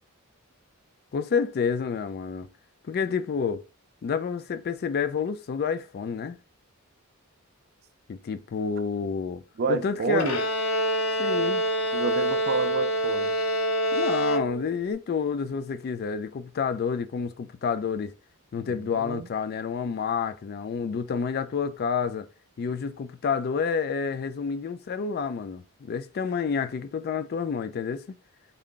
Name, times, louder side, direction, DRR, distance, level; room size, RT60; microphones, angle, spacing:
voice 1, 1.1-2.5 2.8-3.6 4.0-6.4 8.1-9.4 9.7-10.3 11.2-11.6 13.9-18.1 18.5-22.3 22.6-28.0, left 6 dB, 45° left, 0.3 m, -29 dB
voice 2, 9.6-10.4 11.9-13.3 18.6-19.3, right 4 dB, 45° right, 0.4 m, -29 dB
Bowed string instrument, 10.2-14.9, equal, 85° left, 0.7 m, -26 dB
3.6 x 2.2 x 3.7 m
head